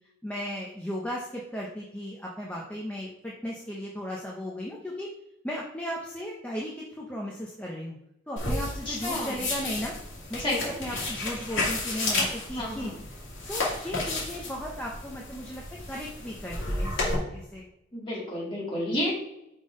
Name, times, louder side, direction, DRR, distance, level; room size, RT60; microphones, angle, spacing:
voice 1, 0.2-5.1 5.4-8.0 8.3-9.9 10.3-12.9 13.4-15.6 15.9-17.7, equal, 5° left, -2 dB, 0.7 m, -36 dB
sound 1, 8.4-17.1, left 2 dB, 80° left, 2.4 m, -32 dB
voice 2, 8.9-9.4 10.4-11.0 12.6-13.0 17.9-19.2, left 1 dB, 25° left, -5 dB, 2.0 m, -31 dB
5.3 x 3.8 x 5.2 m, 0.86 s
head